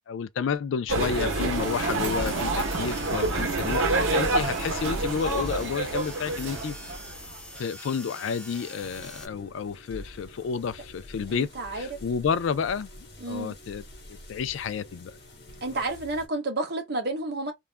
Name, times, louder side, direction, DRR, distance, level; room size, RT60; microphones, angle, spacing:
voice 1, 0.1-6.8 7.6-12.9 13.3-13.8 14.1-15.1, left 6 dB, 80° left, 0.3 m, -30 dB
sound 1, 0.9-7.6, right 2 dB, 90° right, 0.7 m, -27 dB
sound 2, 1.6-9.3, left 1 dB, 5° left, 0.3 m, -44 dB
voice 2, 2.2-2.6 11.3-12.0 13.2-13.5 15.6-17.5, right 2 dB, 55° right, 0.7 m, -31 dB
sound 3, 8.8-16.3, left 1 dB, 55° left, 0.9 m, -47 dB
2.3 x 2.1 x 3.2 m
head